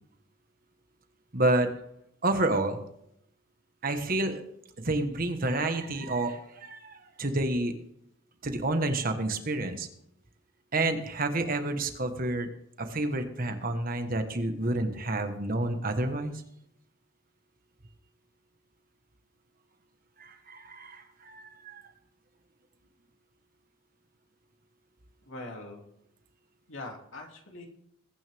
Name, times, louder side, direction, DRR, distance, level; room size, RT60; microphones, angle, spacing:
voice 1, 1.3-1.7 2.2-2.8 3.8-4.4 4.8-7.7 8.4-9.9 10.7-12.5 12.8-16.4 20.2-21.8, right 2 dB, 45° right, 7 dB, 1.4 m, -29 dB
voice 2, 25.2-25.8 26.7-27.7, left 2 dB, 70° left, 1 dB, 2.8 m, -42 dB
21.5 x 9.9 x 3.6 m, 0.74 s
head